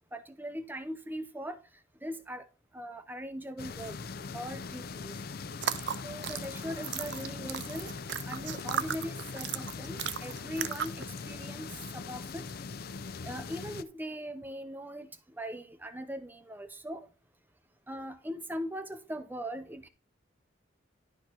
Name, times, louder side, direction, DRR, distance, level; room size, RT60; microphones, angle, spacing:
voice 1, 0.1-1.6 2.0-2.4 2.7-4.0 4.3-5.2 6.0-7.9 8.2-12.5 13.2-15.1 15.4-17.1 17.9-19.9, equal, 10° right, 0.6 m, -40 dB
sound 1, 3.6-13.8, left 4 dB, 50° left, 0.5 m, -41 dB
sound 2, 5.5-11.1, right 9 dB, 60° right, 0.4 m, -36 dB
11.0 x 4.7 x 4.4 m
head